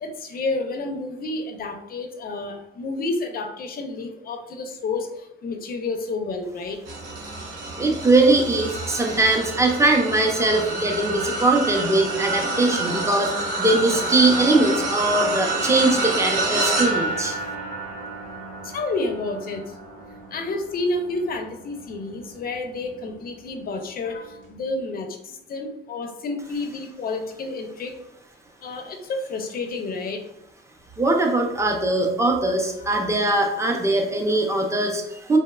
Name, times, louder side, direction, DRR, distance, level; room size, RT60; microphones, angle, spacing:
voice 1, 0.0-6.8 18.6-19.6 20.3-27.9 28.6-30.2 32.8-32.9, left 3 dB, 50° left, 5 dB, 0.4 m, -30 dB
sound 1, 6.9-22.4 22.9-23.1 24.4-24.5, right 2 dB, 70° right, 0.8 m, -28 dB
voice 2, 7.8-13.3 13.6-17.4 31.0-35.4, right 2 dB, 15° right, 2 dB, 0.5 m, -21 dB
2.8 x 2.0 x 2.3 m, 0.84 s
cardioid pair, 90°, 20 cm